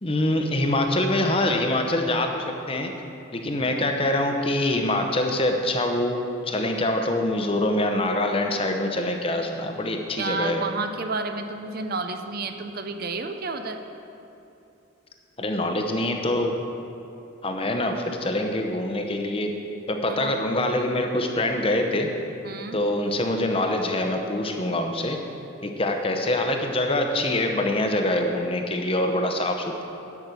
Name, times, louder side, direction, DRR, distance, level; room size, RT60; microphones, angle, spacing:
voice 1, 0.0-2.9 3.3-10.6 15.4-16.5 17.4-19.6 19.9-22.1 22.7-25.2 25.6-29.8, left 1 dB, 25° left, 4 dB, 0.8 m, -25 dB
voice 2, 10.2-13.8 20.1-20.3 22.4-22.8, right 3 dB, 45° right, 7 dB, 0.6 m, -31 dB
11.0 x 6.1 x 8.1 m, 2.8 s
head